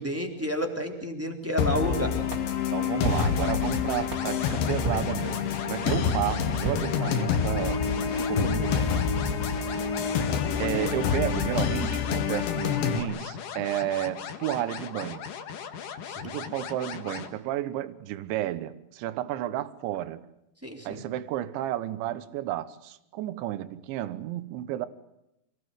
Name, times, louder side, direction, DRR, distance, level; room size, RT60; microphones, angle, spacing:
voice 1, 0.0-2.2 16.1-16.4 20.6-21.0, equal, 5° right, 2.9 m, -30 dB
sound 1, 1.6-13.0, left 7 dB, 80° left, 4.4 m, -27 dB
sound 2, 2.3-7.6, right 3 dB, 25° right, 3.8 m, -37 dB
voice 2, 2.7-8.9 10.6-15.3 16.2-20.2 20.8-24.9, right 13 dB, 80° right, 3.5 m, -32 dB
sound 3, 3.1-17.3, left 7 dB, 55° left, 2.8 m, -39 dB
27.5 x 20.0 x 8.0 m
omnidirectional pair, 5.2 m